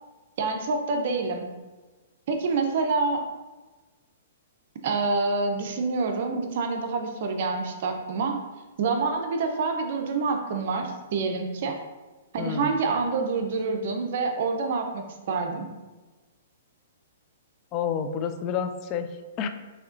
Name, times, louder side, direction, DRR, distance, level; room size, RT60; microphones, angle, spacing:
voice 1, 0.4-1.5 2.3-3.2 4.8-8.4 8.8-11.8 12.3-15.7, right 4 dB, 55° right, 4 dB, 0.6 m, -27 dB
voice 2, 12.4-12.8 17.7-19.1 19.4-19.5, left 7 dB, 30° left, 8 dB, 0.3 m, -29 dB
5.9 x 2.8 x 2.6 m, 1.2 s
hypercardioid pair, 145°, 0 cm